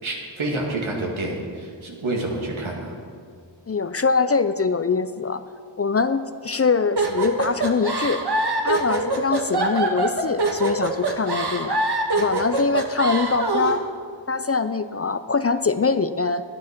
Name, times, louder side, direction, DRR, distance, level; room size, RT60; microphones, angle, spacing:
voice 1, 0.0-2.9, right 2 dB, 85° right, -1 dB, 2.1 m, -28 dB
voice 2, 3.7-5.4 5.8-8.2 8.6-11.8 12.2-13.9 14.3-16.4, left 4 dB, 30° left, 11 dB, 0.4 m, -23 dB
sound 1, 7.0-13.8, right 3 dB, 55° right, 1.3 m, -24 dB
11.0 x 9.8 x 5.9 m, 2.1 s
wide cardioid pair, 65°, 47 cm